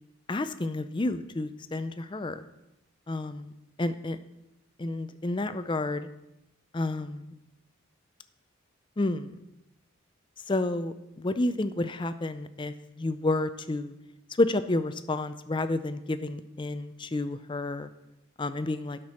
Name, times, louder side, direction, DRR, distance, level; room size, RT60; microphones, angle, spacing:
voice 1, 0.3-2.5 3.1-3.5 3.8-4.2 4.8-6.1 6.7-7.3 9.0-9.4 10.5-13.9 14.4-17.9 18.4-19.0, left 2 dB, 25° left, 11 dB, 0.4 m, -30 dB
10.5 x 6.0 x 6.3 m, 0.91 s
head